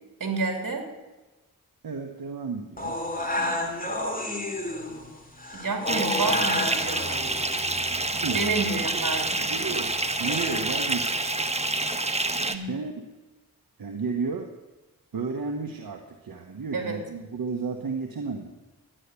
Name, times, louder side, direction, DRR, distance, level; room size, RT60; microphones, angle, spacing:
voice 1, 0.2-0.8 3.4-3.9 5.5-7.0 8.3-9.4 12.5-12.7 16.7-17.0, right 4 dB, 65° right, 3 dB, 3.3 m, -29 dB
voice 2, 1.8-3.0 8.0-8.4 8.8-9.0 9.5-11.3 12.7-13.1 13.8-14.5 15.1-18.5, right 4 dB, 85° right, 4 dB, 1.2 m, -33 dB
sound 1, 2.8-10.8, left 1 dB, 25° left, 2.7 m, -32 dB
Bathtub (filling or washing) / Fill (with liquid), 5.9-12.6, right 2 dB, 20° right, 1.1 m, -27 dB
12.5 x 10.0 x 8.2 m, 1.1 s
cardioid pair, 50°, 35 cm